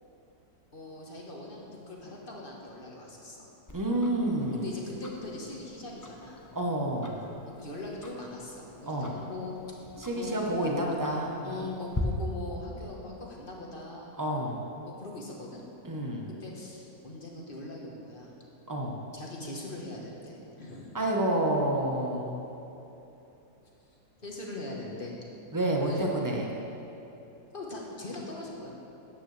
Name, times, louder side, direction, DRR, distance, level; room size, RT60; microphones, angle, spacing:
voice 1, 0.7-3.5 4.5-6.4 7.5-9.6 10.1-10.8 11.4-14.1 14.9-15.6 16.3-18.3 19.1-20.9 24.2-25.1 25.9-26.2 27.5-28.7, left 2 dB, 35° left, -2 dB, 1.4 m, -41 dB
Tick-tock, 3.7-12.0, left 2 dB, 20° left, 0.6 m, -46 dB
voice 2, 3.7-4.7 6.5-7.2 8.8-9.1 10.0-11.7 14.2-14.6 15.8-16.3 18.7-19.0 20.9-22.4 25.5-26.5, right 1 dB, 15° right, -1 dB, 0.9 m, -29 dB
13.0 x 9.2 x 3.3 m, 3.0 s
omnidirectional pair, 1.8 m